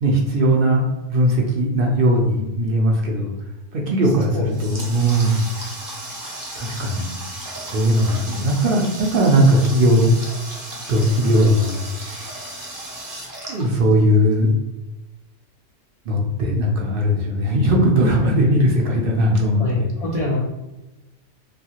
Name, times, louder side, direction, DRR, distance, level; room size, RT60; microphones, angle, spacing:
voice 1, 0.0-3.3 3.7-5.4 6.6-7.1 7.6-10.0 10.9-12.4 13.5-14.5 16.1-19.9, equal, 60° right, -1 dB, 0.7 m, -19 dB
Water tap faucet, 4.2-14.3, right 1 dB, 30° right, 0.3 m, -35 dB
voice 2, 4.3-4.8 10.0-10.1 18.2-18.3 19.6-20.4, left 1 dB, 55° left, -5 dB, 0.4 m, -25 dB
2.8 x 2.3 x 2.8 m, 1.0 s
omnidirectional pair, 1.2 m